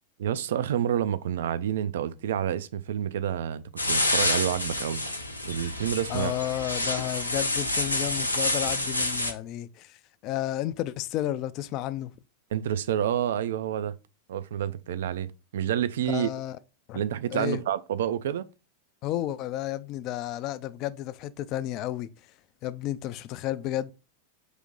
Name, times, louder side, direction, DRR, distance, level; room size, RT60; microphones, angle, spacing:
voice 1, 0.2-5.0 5.4-6.3 12.5-14.0 14.3-16.3 16.9-18.5, right 10 dB, 60° right, 0.4 m, -28 dB
sound 1, 3.8-9.3, left 2 dB, 85° left, 0.6 m, -28 dB
voice 2, 6.1-10.0 10.2-12.1 16.1-16.6 16.9-17.0 17.3-17.6 19.0-22.1 22.6-23.9, left 13 dB, 40° left, 0.4 m, -32 dB
4.9 x 2.8 x 3.7 m
figure-of-eight pair, 90°, 0 cm